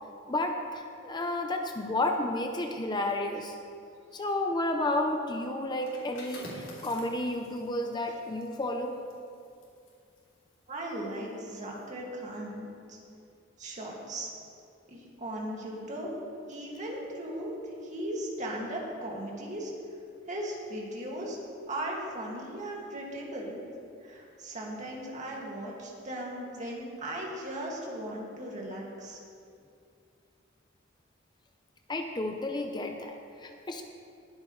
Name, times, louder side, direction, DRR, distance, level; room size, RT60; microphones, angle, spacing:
voice 1, 0.3-3.6 4.1-8.9 31.9-33.8, left 1 dB, 25° left, 4 dB, 0.6 m, -31 dB
sound 1, 5.7-11.2 11.6-11.8, left 1 dB, 85° left, 3.1 m, -49 dB
voice 2, 10.7-13.0 13.6-14.3 14.9-16.2 16.5-17.6 17.8-19.7 20.3-21.4 21.7-23.6 24.0-29.2, right 1 dB, 40° right, -3 dB, 2.2 m, -37 dB
20.5 x 8.2 x 3.2 m, 2.4 s
head